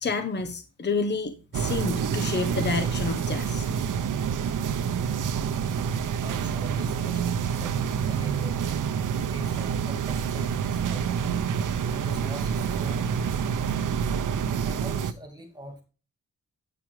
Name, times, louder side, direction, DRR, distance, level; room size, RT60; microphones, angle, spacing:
voice 1, 0.0-3.7, left 4 dB, 35° left, 7 dB, 1.0 m, -29 dB
sound 1, 1.5-15.1, right 7 dB, 80° right, 0.8 m, -27 dB
voice 2, 6.2-7.2 7.6-8.6 9.3-11.3 11.6-13.0 13.3-14.0 14.6-15.8, right 1 dB, 15° right, 2 dB, 2.6 m, -43 dB
9.0 x 6.0 x 4.8 m, 0.34 s
wide cardioid pair, 140°, 31 cm